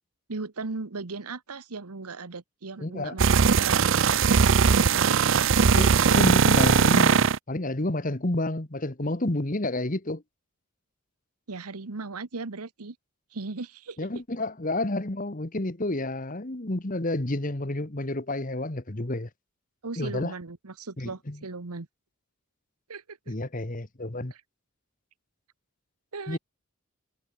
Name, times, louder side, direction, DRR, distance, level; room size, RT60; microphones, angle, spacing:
voice 1, 0.3-3.8 4.7-5.2 11.5-12.9 13.3-14.1 19.8-21.9 22.9-23.2 24.3-24.4 26.1-26.4, right 3 dB, 90° right, 1.2 m, -37 dB
voice 2, 2.8-3.2 5.7-10.2 14.0-19.3 20.0-20.3 21.0-21.4 23.3-24.3 26.3-26.4, left 1 dB, 35° left, 1.4 m, -30 dB
sound 1, 3.2-7.4, right 6 dB, 60° right, 0.5 m, -20 dB
head